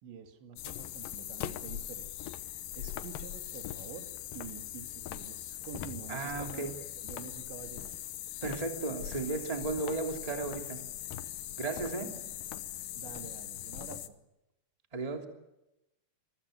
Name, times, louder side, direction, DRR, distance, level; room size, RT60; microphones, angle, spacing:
voice 1, 0.0-2.3 2.8-6.7 7.0-8.0 12.0-12.1 12.9-14.2, right 7 dB, 85° right, 6 dB, 4.6 m, -48 dB
sound 1, 0.6-14.1, left 12 dB, 70° left, 2.3 m, -41 dB
voice 2, 6.1-6.7 8.4-10.8 11.6-12.1 14.9-15.3, right 3 dB, 10° right, 4 dB, 2.4 m, -34 dB
28.0 x 23.0 x 6.7 m, 0.92 s
omnidirectional pair, 5.0 m